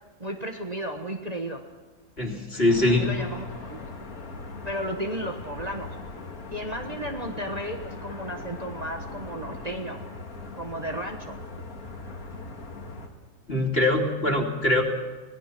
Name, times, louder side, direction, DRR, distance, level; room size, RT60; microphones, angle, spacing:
voice 1, 0.2-1.7 2.9-3.9 4.5-6.0 6.5-10.0 10.5-11.4, right 1 dB, 25° right, 2 dB, 1.5 m, -34 dB
voice 2, 2.2-3.1 13.5-14.8, left 1 dB, 40° left, 1 dB, 3.1 m, -23 dB
sound 1, 2.7-13.1, left 3 dB, 70° left, 2.6 m, -40 dB
25.5 x 18.5 x 6.1 m, 1.3 s
omnidirectional pair, 1.6 m